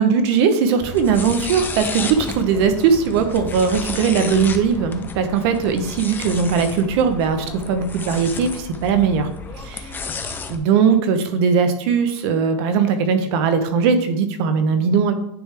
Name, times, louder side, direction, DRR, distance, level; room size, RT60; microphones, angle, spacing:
voice 1, 0.0-9.3 10.5-15.1, right 6 dB, 55° right, 8 dB, 1.0 m, -19 dB
sound 1, 0.8-10.6, left 4 dB, 10° left, 0.4 m, -32 dB
9.6 x 3.3 x 3.4 m, 0.75 s
supercardioid pair, 150°, 16 cm